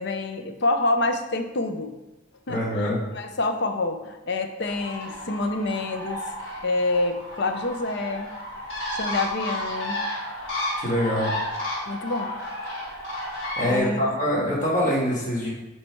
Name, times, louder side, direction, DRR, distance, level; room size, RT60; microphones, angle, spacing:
voice 1, 0.0-1.9 2.5-6.2 6.6-8.3 8.9-10.0 11.9-12.3 13.7-14.0, left 2 dB, 55° left, 6 dB, 0.6 m, -27 dB
voice 2, 2.5-3.0 10.8-11.3 13.6-15.5, left 1 dB, 40° left, -5 dB, 1.9 m, -24 dB
Bird, 4.6-13.8, left 1 dB, 70° left, 2.1 m, -32 dB
8.6 x 3.3 x 4.5 m, 1.1 s
head